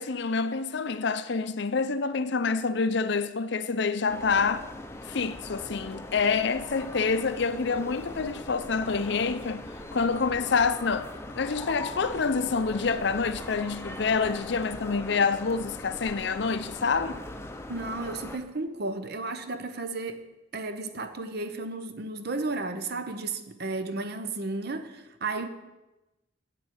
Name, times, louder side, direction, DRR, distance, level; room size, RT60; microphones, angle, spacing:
voice 1, 0.0-4.7 5.1-9.6 9.9-11.1 11.4-17.2, left 5 dB, 60° left, 0.6 m, -27 dB
sound 1, 4.1-18.4, left 1 dB, 15° left, 0.6 m, -40 dB
voice 2, 17.7-20.2 20.5-25.5, right 3 dB, 50° right, 0.8 m, -33 dB
8.4 x 7.0 x 8.1 m
head